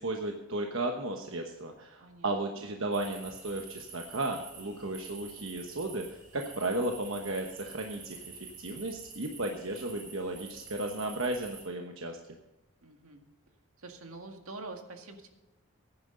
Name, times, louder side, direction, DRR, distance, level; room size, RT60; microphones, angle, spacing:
voice 1, 0.0-12.2, right 2 dB, 65° right, 3 dB, 1.1 m, -34 dB
voice 2, 2.0-2.7 12.8-13.2 13.8-15.3, right 2 dB, 80° right, 4 dB, 1.9 m, -46 dB
sound 1, 2.9-11.7, right 4 dB, 35° right, 3.6 m, -48 dB
16.0 x 10.5 x 3.9 m, 1.0 s
head